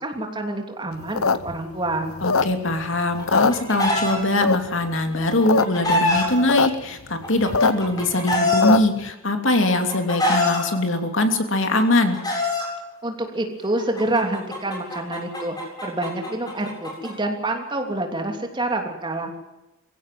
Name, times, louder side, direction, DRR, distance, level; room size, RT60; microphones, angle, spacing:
voice 1, 0.0-2.1 13.0-15.6 15.8-19.3, right 2 dB, 20° right, 3 dB, 3.1 m, -27 dB
sound 1, 1.0-2.8 3.2-4.1 4.4-4.9 5.3-5.6 5.9-6.0 6.2-6.7 7.0-9.0, left 4 dB, 80° left, 0.9 m, -21 dB
voice 2, 2.2-12.2, left 1 dB, 60° left, 5 dB, 3.0 m, -22 dB
Chicken rooster, 3.2-4.1 5.2-6.3 7.2-8.6 9.5-10.6 11.6-12.6 13.8-17.1, left 2 dB, 20° left, 7.6 m, -24 dB
23.5 x 16.5 x 7.7 m, 0.99 s
head